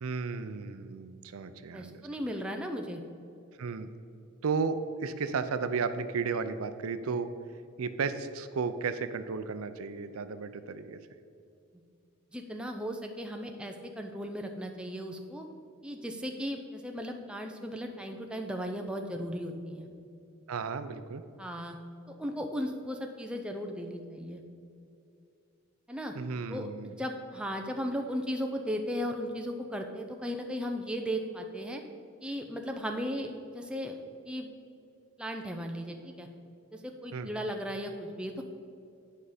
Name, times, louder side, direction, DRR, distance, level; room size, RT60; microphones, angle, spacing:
voice 1, 0.0-2.0 3.6-3.9 4.4-7.3 7.8-11.0 20.5-21.2 26.1-26.9 37.1-37.3, right 5 dB, 80° right, 11 dB, 0.5 m, -34 dB
voice 2, 1.7-3.0 12.3-15.5 15.8-19.9 21.4-21.8 22.1-24.4 25.9-26.1 26.5-31.8 32.2-34.0 34.3-34.5 35.2-36.3 36.7-38.4, equal, 5° right, 3 dB, 0.5 m, -36 dB
10.5 x 5.5 x 5.0 m, 2.6 s
head